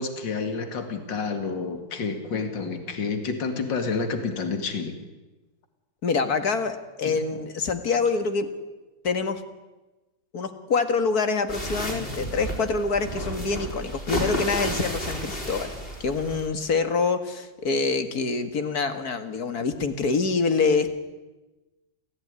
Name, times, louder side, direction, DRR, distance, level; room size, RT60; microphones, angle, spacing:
voice 1, 0.0-5.0 7.0-7.1, left 4 dB, 70° left, 7 dB, 2.9 m, -29 dB
voice 2, 6.0-8.5 9.0-9.4 10.3-15.7 16.0-20.9, left 4 dB, 55° left, 9 dB, 2.2 m, -25 dB
sound 1, 11.5-16.5, equal, 25° left, 5.3 m, -32 dB
28.5 x 15.5 x 9.8 m, 1.1 s
omnidirectional pair, 2.1 m